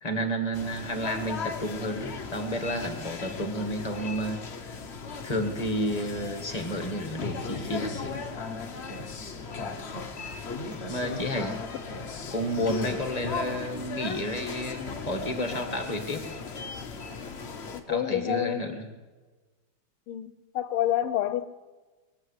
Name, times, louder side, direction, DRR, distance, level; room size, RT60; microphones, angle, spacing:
voice 1, 0.0-4.7 5.2-8.1 10.9-11.6 12.3-16.2 17.9-18.9, equal, 20° left, 1.3 m, -31 dB
sound 1, 0.5-17.8, left 4 dB, 45° left, 0.9 m, -37 dB
voice 2, 17.7-18.8 20.1-21.5, left 12 dB, 80° left, 1.6 m, -28 dB
22.0 x 7.5 x 8.1 m
omnidirectional pair, 2.4 m